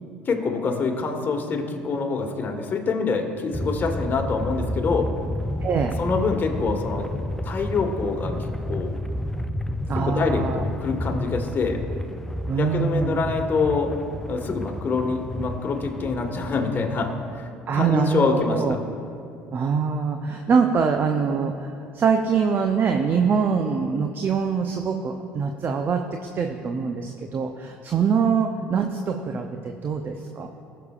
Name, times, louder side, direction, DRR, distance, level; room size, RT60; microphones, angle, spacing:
voice 1, 0.2-5.1 6.0-8.9 9.9-11.8 12.6-13.9 14.3-17.1 17.7-18.8, left 4 dB, 40° left, 3 dB, 1.5 m, -25 dB
sound 1, 3.5-17.5, left 1 dB, 5° left, 0.4 m, -31 dB
voice 2, 5.6-6.0 9.9-10.6 12.5-13.2 17.7-18.8 19.5-30.5, right 6 dB, 40° right, 4 dB, 0.6 m, -24 dB
20.0 x 6.8 x 2.4 m, 2.6 s
hypercardioid pair, 65°, 5 cm